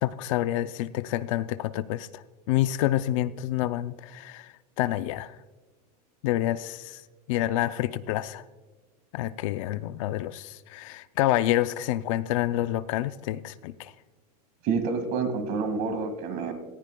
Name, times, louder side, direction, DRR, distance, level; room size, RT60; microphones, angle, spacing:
voice 1, 0.0-5.4 6.2-8.5 9.1-13.9, left 14 dB, 50° left, 14 dB, 0.4 m, -28 dB
voice 2, 14.6-16.5, right 4 dB, 40° right, 8 dB, 1.9 m, -28 dB
18.0 x 14.0 x 2.2 m, 1.3 s
supercardioid pair, 165°, 21 cm